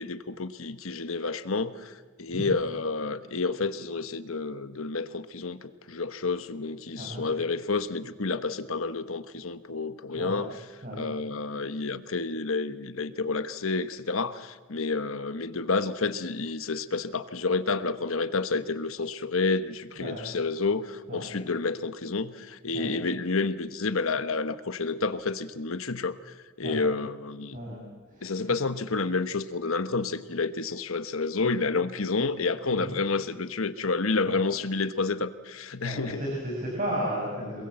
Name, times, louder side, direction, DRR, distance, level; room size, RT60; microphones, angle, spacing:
voice 1, 0.0-1.9 2.2-10.5 10.9-27.6 28.2-36.2, left 3 dB, 75° left, 12 dB, 1.2 m, -29 dB
voice 2, 6.9-7.2 10.1-10.4 10.8-11.1 20.0-20.2 21.1-21.3 22.7-22.9 26.6-26.8 27.5-27.8 28.1-28.6 32.7-32.9 34.3-34.5 35.8-37.6, right 1 dB, 40° right, -2 dB, 6.7 m, -34 dB
27.0 x 22.0 x 7.9 m, 1.4 s
head